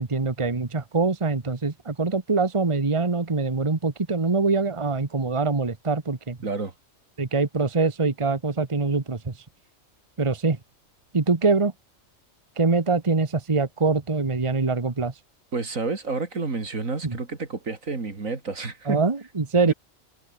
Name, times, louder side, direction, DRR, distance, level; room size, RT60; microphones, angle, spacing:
voice 1, 0.0-6.4 7.2-9.3 10.2-10.6 11.1-11.7 12.6-15.1 17.0-17.2 18.9-19.7, right 4 dB, 25° right, 1.4 m, -24 dB
voice 2, 6.4-6.7 15.5-19.0 19.6-19.7, right 3 dB, 85° right, 3.4 m, -30 dB
omnidirectional pair, 1.4 m